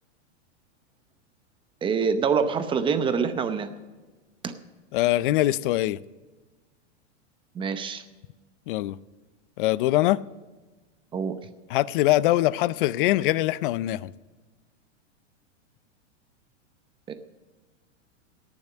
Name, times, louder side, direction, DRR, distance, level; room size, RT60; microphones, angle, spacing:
voice 1, 1.8-3.7 4.4-4.5 7.5-8.0 11.1-11.3 17.1-17.2, right 6 dB, 15° right, 10 dB, 0.7 m, -25 dB
voice 2, 4.9-6.0 8.7-9.0 9.6-10.2 11.7-14.1, left 16 dB, 45° left, 19 dB, 0.5 m, -23 dB
18.0 x 7.2 x 6.6 m, 1.3 s
supercardioid pair, 145°, 37 cm